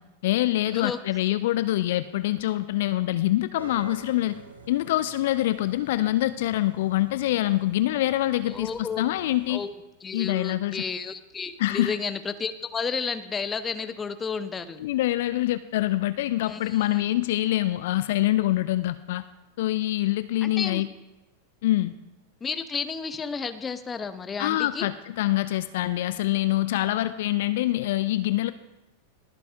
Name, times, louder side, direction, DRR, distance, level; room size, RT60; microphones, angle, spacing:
voice 1, 0.2-4.4 4.7-9.6 10.1-10.8 11.6-12.0 14.8-19.2 19.6-20.9 21.6-21.9 24.4-28.5, left 15 dB, 55° left, 13 dB, 0.5 m, -25 dB
sound 1, 3.5-9.6, right 2 dB, 75° right, 4.5 m, -47 dB
voice 2, 8.5-9.0 9.5-9.7 10.0-14.8 16.4-16.8 20.4-20.8 22.4-24.9, left 5 dB, 20° left, 11 dB, 0.7 m, -32 dB
22.5 x 8.3 x 2.6 m, 1.0 s
figure-of-eight pair, 90°, 0 cm